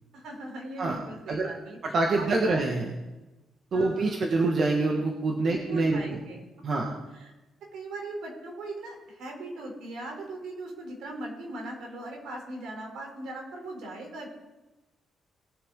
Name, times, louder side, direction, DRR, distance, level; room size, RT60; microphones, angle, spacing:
voice 1, 0.1-1.8 2.2-2.7 3.7-4.4 5.5-7.3 7.7-14.3, right 2 dB, 80° right, 0 dB, 3.6 m, -39 dB
voice 2, 1.8-2.9 3.7-6.0 6.6-6.8, right 3 dB, 55° right, 0 dB, 1.6 m, -25 dB
20.5 x 7.0 x 3.8 m, 1.1 s
cardioid pair, 90°, 0 cm